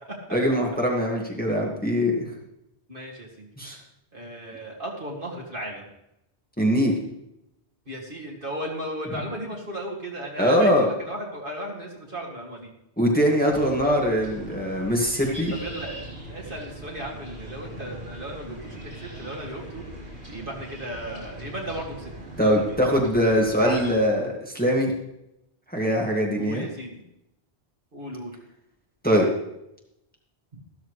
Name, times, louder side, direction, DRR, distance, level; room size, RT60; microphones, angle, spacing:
voice 1, 0.3-2.2 3.6-3.8 6.6-7.0 10.4-10.9 13.0-15.5 22.4-24.9 25.7-26.7 29.0-29.3, equal, 10° left, -2 dB, 1.9 m, -22 dB
voice 2, 2.9-3.5 4.1-5.9 7.9-12.7 15.5-16.0 16.3-19.8 20.3-22.1 22.4-22.8 23.6-24.0 26.4-27.0 27.9-28.4 30.5-30.6, right 1 dB, 50° right, -2 dB, 2.4 m, -35 dB
sound 1, 13.5-23.9, right 1 dB, 75° right, 3.9 m, -40 dB
13.5 x 13.0 x 3.2 m, 0.84 s
omnidirectional pair, 1.1 m